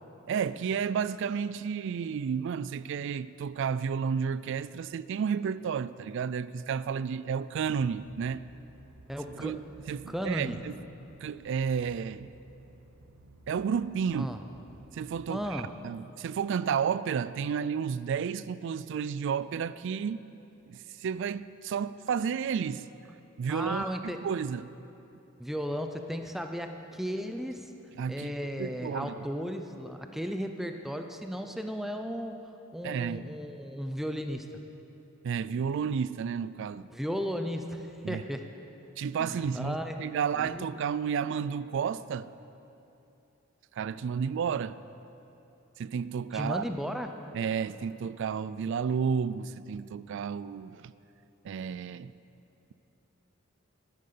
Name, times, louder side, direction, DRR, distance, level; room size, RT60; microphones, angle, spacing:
voice 1, 0.3-8.4 9.3-9.6 9.9-10.8 11.2-12.3 13.5-14.3 14.9-20.3 20.7-22.9 23.4-24.7 28.0-28.3 28.6-29.1 32.8-33.3 35.2-36.9 38.0-38.2 39.0-42.3 43.8-44.8 45.8-46.6 47.3-50.9 51.4-52.1, right 6 dB, 60° right, 0.3 m, -31 dB
sound 1, 7.6-15.6, right 2 dB, 80° right, 0.8 m, -55 dB
voice 2, 9.1-9.7 10.1-10.6 14.1-14.4 15.3-15.7 23.5-24.3 25.4-27.7 28.1-32.4 32.7-34.5 36.9-38.5 39.2-40.6 46.3-47.1, equal, ahead, 0.5 m, -35 dB
10.5 x 9.2 x 6.7 m
head